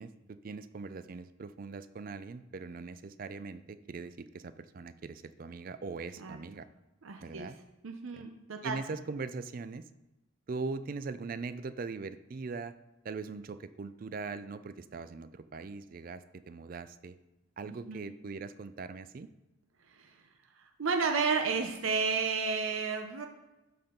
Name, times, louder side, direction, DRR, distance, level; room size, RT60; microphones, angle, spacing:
voice 1, 0.0-6.7 7.2-7.5 8.1-8.2 8.6-9.9 10.5-12.7 13.0-17.2 17.6-19.3, right 4 dB, 45° right, 13 dB, 0.4 m, -41 dB
voice 2, 7.0-7.5 7.8-8.8 17.6-18.0 19.9-20.2 20.6-23.3, right 5 dB, 80° right, 5 dB, 0.7 m, -32 dB
12.0 x 4.4 x 3.8 m, 1.0 s
head